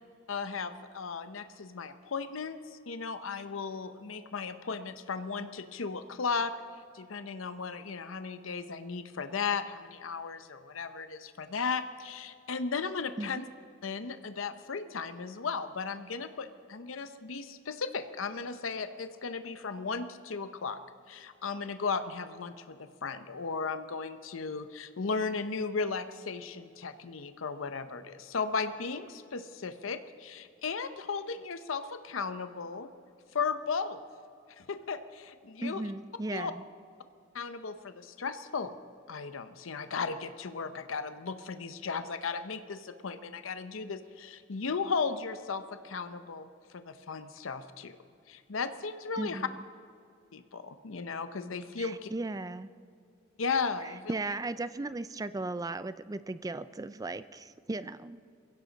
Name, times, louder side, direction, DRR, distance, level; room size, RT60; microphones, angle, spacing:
voice 1, 0.3-6.5 6.9-13.4 13.8-20.8 21.1-32.9 33.3-34.0 34.5-35.8 36.3-36.5 37.3-38.7 39.1-48.0 48.3-49.5 50.3-52.1 53.4-54.1, left 5 dB, 85° left, 10 dB, 0.7 m, -36 dB
voice 2, 35.6-36.6 49.2-49.6 51.8-52.7 53.8-58.2, right 2 dB, 20° right, 14 dB, 0.4 m, -36 dB
22.0 x 16.0 x 4.0 m, 2.4 s
head